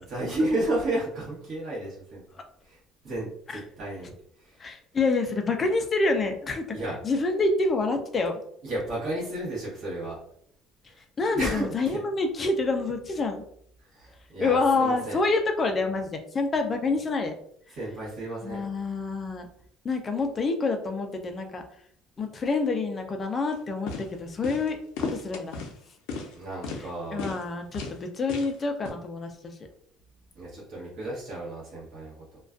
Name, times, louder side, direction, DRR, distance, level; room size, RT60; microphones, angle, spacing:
voice 1, 0.0-2.2 2.6-2.8 3.0-4.1 4.4-4.6 6.7-7.0 8.6-10.2 10.9-11.0 11.3-12.0 13.8-15.2 17.7-18.6 26.3-27.3 30.4-32.4, right 1 dB, 45° right, -6 dB, 1.0 m, -32 dB
voice 2, 4.6-6.7 7.0-8.4 10.8-13.4 14.4-17.3 17.7-17.8 18.4-19.5 19.8-21.6 22.2-25.6 27.1-29.6, left 3 dB, 25° left, 5 dB, 0.3 m, -27 dB
sound 1, 23.5-23.6 23.9-24.1 24.4-24.7 25.0-25.7 26.1-26.3 26.6-26.8 27.2-27.4 27.7-28.0 28.3-28.5 28.8-28.9, left 4 dB, 80° left, 0.5 m, -34 dB
2.4 x 2.2 x 2.3 m, 0.67 s
cardioid pair, 165°, 0 cm